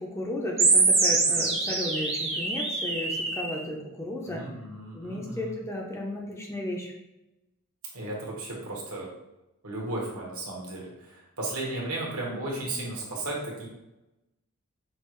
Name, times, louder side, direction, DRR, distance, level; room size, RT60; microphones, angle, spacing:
voice 1, 0.0-4.4 4.9-6.9, left 1 dB, 10° left, -1 dB, 0.5 m, -34 dB
sound 1, 0.6-3.6, right 3 dB, 25° right, 0.6 m, -24 dB
voice 2, 4.2-5.6 7.9-9.1 9.6-13.7, right 2 dB, 80° right, -3 dB, 1.3 m, -35 dB
5.4 x 2.4 x 3.0 m, 0.94 s
head